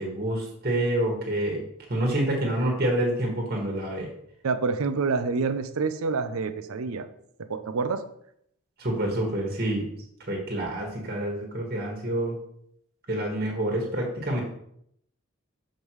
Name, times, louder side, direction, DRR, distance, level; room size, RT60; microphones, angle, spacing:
voice 1, 0.0-1.6 1.9-4.1 8.8-9.9 10.3-12.4 13.1-14.4, right 1 dB, 45° right, -1 dB, 1.5 m, -27 dB
voice 2, 4.4-7.1 7.4-8.0, right 4 dB, 85° right, 10 dB, 0.5 m, -27 dB
7.3 x 5.1 x 3.1 m, 0.71 s
head